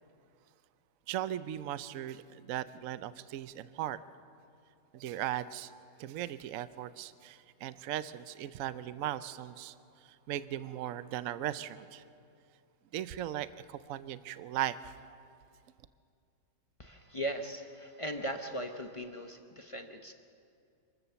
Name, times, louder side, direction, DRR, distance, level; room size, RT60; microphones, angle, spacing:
voice 1, 1.1-4.0 4.9-5.7 6.0-9.7 10.0-12.0 12.9-14.9, right 12 dB, 75° right, 14 dB, 0.7 m, -38 dB
voice 2, 16.8-20.1, right 1 dB, 35° left, 5 dB, 0.5 m, -39 dB
26.5 x 14.0 x 6.9 m, 2.4 s
omnidirectional pair, 2.0 m